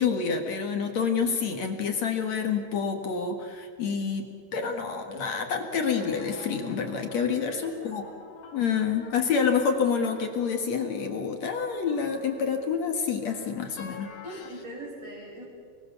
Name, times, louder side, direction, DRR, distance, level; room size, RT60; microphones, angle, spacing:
voice 1, 0.0-4.2 4.5-8.0 8.5-14.1, left 6 dB, 50° left, 4 dB, 2.3 m, -28 dB
sound 1, 5.9-14.5, left 4 dB, 75° left, 4.6 m, -48 dB
voice 2, 7.3-7.9 14.2-15.4, right 1 dB, 20° right, -6 dB, 6.1 m, -41 dB
30.0 x 21.0 x 7.1 m, 2.1 s
omnidirectional pair, 5.0 m